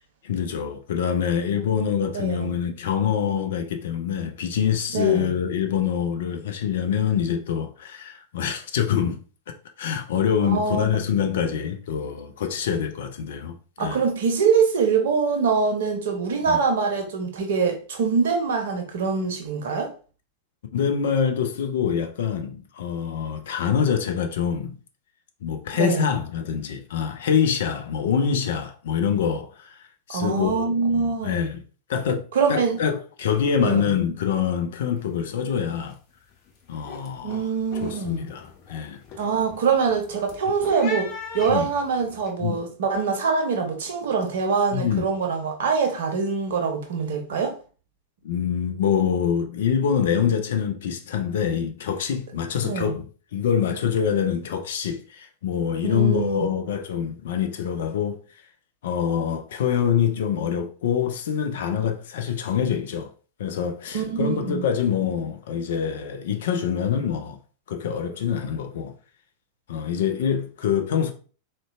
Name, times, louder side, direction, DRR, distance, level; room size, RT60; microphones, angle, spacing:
voice 1, 0.2-9.2 9.8-14.0 16.5-16.6 20.7-24.8 25.4-29.7 30.1-31.6 31.9-36.0 36.7-37.4 37.8-39.0 41.5-41.7 42.4-42.6 44.7-45.0 48.2-53.1 53.3-58.2 58.8-63.1 63.4-67.4 67.7-68.9 69.7-71.1, left 8 dB, 60° left, 0.4 m, -25 dB
voice 2, 2.1-2.5 4.9-5.3 10.4-10.8 13.8-19.9 25.7-26.1 30.1-31.4 32.3-32.8 33.6-33.8 37.2-38.2 39.2-47.5 52.6-52.9 55.8-56.5 63.9-64.7, right 5 dB, 60° right, 0.7 m, -24 dB
purr meow combo, 35.0-35.2 35.5-35.9 36.3-42.3, left 5 dB, 40° left, 0.7 m, -40 dB
3.8 x 2.2 x 2.3 m
figure-of-eight pair, 90°, 0 cm